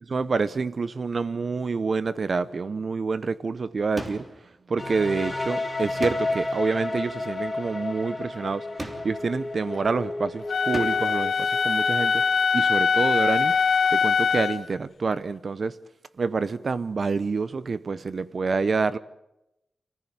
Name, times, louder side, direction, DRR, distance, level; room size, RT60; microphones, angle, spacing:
voice 1, 0.1-4.2 4.7-8.7 9.0-12.2 12.5-13.6 13.9-15.8 16.2-19.0, right 4 dB, 50° right, 0.8 m, -27 dB
sound 1, 4.0-4.5 6.0-6.6 8.8-9.3 10.7-11.2, right 1 dB, 20° right, 3.2 m, -37 dB
sound 2, 4.8-12.5, left 2 dB, 15° left, 4.8 m, -32 dB
Wind instrument woodwind instrument, 10.5-14.6, left 5 dB, 65° left, 1.1 m, -22 dB
29.0 x 15.5 x 9.1 m
wide cardioid pair, 105°, 0 cm